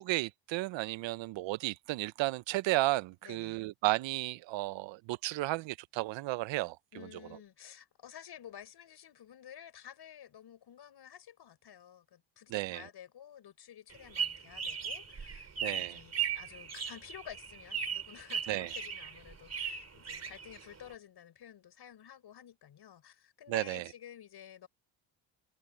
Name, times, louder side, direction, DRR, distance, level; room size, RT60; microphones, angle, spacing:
voice 1, 0.0-6.8 12.5-12.8 15.6-16.0 18.5-18.7 23.5-23.8, right 19 dB, 75° right, 0.9 m, -33 dB
voice 2, 3.2-3.6 6.9-24.7, left 10 dB, 60° left, 6.9 m, -51 dB
sound 1, 13.9-20.9, right 7 dB, 35° right, 3.7 m, -38 dB
supercardioid pair, 75°, 45 cm